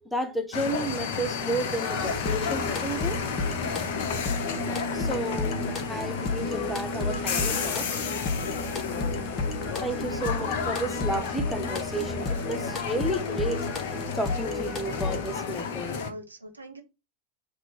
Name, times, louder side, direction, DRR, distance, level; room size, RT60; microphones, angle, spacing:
voice 1, 0.0-3.2 4.9-5.6 5.9-7.9 9.8-13.7 14.1-16.0, right 1 dB, 5° left, 1.1 m, -32 dB
sound 1, 0.5-16.1, left 5 dB, 50° left, 1.2 m, -32 dB
sound 2, 2.0-15.4, left 3 dB, 20° left, 1.4 m, -33 dB
voice 2, 15.9-16.8, right 1 dB, 85° right, 1.7 m, -43 dB
7.9 x 3.6 x 6.0 m
figure-of-eight pair, 90°, 0 cm